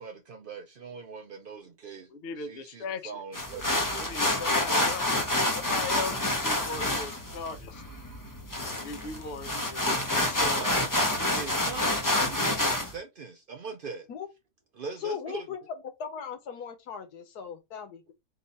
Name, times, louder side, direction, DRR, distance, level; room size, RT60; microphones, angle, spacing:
voice 1, 0.0-2.1 2.4-4.1 10.5-14.1 14.7-15.5, right 5 dB, 75° right, 0.5 m, -41 dB
voice 2, 2.1-3.1 4.0-7.8 8.7-10.6, left 4 dB, 55° left, 0.7 m, -38 dB
sound 1, 3.3-12.9, left 1 dB, 25° left, 0.4 m, -28 dB
voice 3, 15.0-15.6 16.0-18.1, left 8 dB, 75° left, 1.4 m, -38 dB
3.9 x 2.7 x 4.0 m
omnidirectional pair, 1.7 m